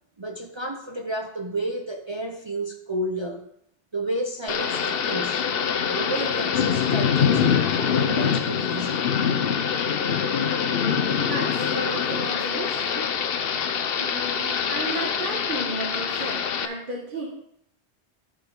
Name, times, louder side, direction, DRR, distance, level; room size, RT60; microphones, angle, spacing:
voice 1, 0.2-3.5 3.9-5.4 5.9-7.5 7.8-9.1, right 1 dB, 35° right, 3 dB, 0.5 m, -31 dB
Thunder / Rain, 4.5-16.7, left 7 dB, 60° left, 0.8 m, -24 dB
voice 2, 11.2-13.1 13.4-13.6 13.9-17.3, right 2 dB, 50° right, -1 dB, 1.3 m, -34 dB
14.0 x 5.0 x 3.7 m, 0.71 s
omnidirectional pair, 1.1 m